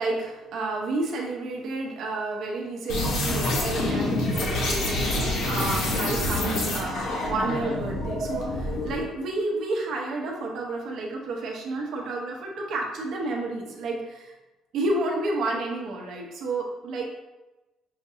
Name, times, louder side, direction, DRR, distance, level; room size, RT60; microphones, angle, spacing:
voice 1, 0.0-14.4 14.7-17.0, right 2 dB, 60° right, 0 dB, 0.8 m, -30 dB
sound 1, 2.9-9.1, left 1 dB, 65° left, 0.9 m, -27 dB
5.8 x 2.6 x 2.7 m, 1.1 s
cardioid pair, 160°, 0 cm